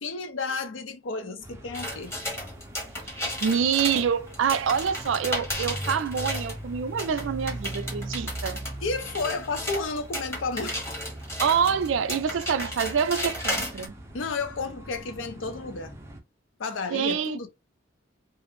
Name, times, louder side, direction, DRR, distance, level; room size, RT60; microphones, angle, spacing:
voice 1, 0.0-2.1 8.8-10.8 14.1-16.0 16.6-17.5, left 4 dB, 85° left, 0.5 m, -32 dB
sound 1, 1.4-16.2, right 1 dB, 15° right, 0.5 m, -40 dB
sound 2, 1.7-6.6 7.0-13.9, left 1 dB, 15° left, 1.0 m, -34 dB
voice 2, 3.4-8.6 11.4-14.0 16.9-17.5, right 7 dB, 80° right, 0.4 m, -26 dB
2.4 x 2.0 x 3.0 m
head